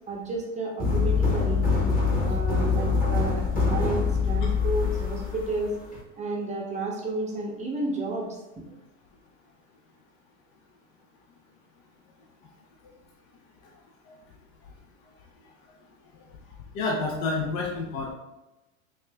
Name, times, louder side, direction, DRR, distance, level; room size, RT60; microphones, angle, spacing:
voice 1, 0.1-1.6 2.2-5.7 6.2-8.3 8.6-8.7, right 2 dB, 15° right, -2 dB, 0.8 m, -31 dB
sound 1, 0.8-6.0, left 4 dB, 20° left, 1.3 m, -24 dB
voice 2, 16.7-18.1, left 3 dB, 45° left, -1 dB, 0.7 m, -29 dB
5.1 x 2.5 x 2.2 m, 0.99 s
hypercardioid pair, 115°, 41 cm